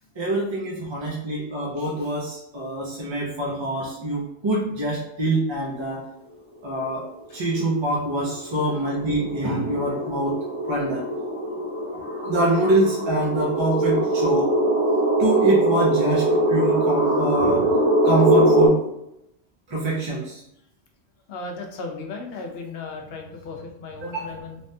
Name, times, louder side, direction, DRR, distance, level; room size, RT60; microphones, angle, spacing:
voice 1, 0.2-6.0 6.6-7.0 7.3-10.4 10.7-11.0 11.9-14.5 15.2-17.8 18.0-18.8 19.7-20.4 24.0-24.2, right 1 dB, 35° right, -4 dB, 0.5 m, -25 dB
sound 1, 7.3-7.4 7.8-18.7, right 1 dB, 15° left, 0.7 m, -22 dB
voice 2, 21.3-24.6, left 3 dB, 75° left, 2 dB, 0.8 m, -36 dB
3.3 x 2.2 x 2.6 m, 0.80 s
omnidirectional pair, 1.1 m